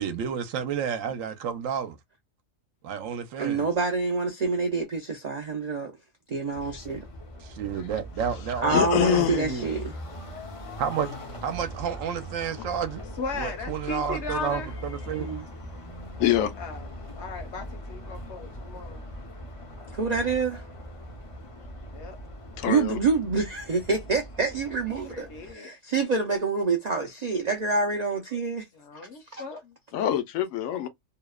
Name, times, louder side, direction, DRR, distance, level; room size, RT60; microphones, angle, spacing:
voice 1, 0.0-2.0 2.8-3.7 7.4-9.7 10.8-11.1 11.4-13.0 13.3-15.3, right 7 dB, 80° right, 1.0 m, -31 dB
voice 2, 3.4-5.9 6.3-7.0 8.6-10.0 15.2-15.5 19.9-20.6 22.7-28.7 28.9-29.4, right 4 dB, 65° right, 0.4 m, -27 dB
sound 1, 6.5-25.5, equal, 45° left, 0.4 m, -41 dB
voice 3, 8.7-9.6 16.2-16.5 22.6-23.0 29.9-30.9, left 11 dB, 85° left, 1.0 m, -24 dB
voice 4, 13.2-14.7 16.6-16.9 17.2-19.0 21.9-22.2 25.1-25.7 28.7-29.7, left 4 dB, 60° left, 1.0 m, -37 dB
2.7 x 2.0 x 2.2 m
omnidirectional pair, 1.3 m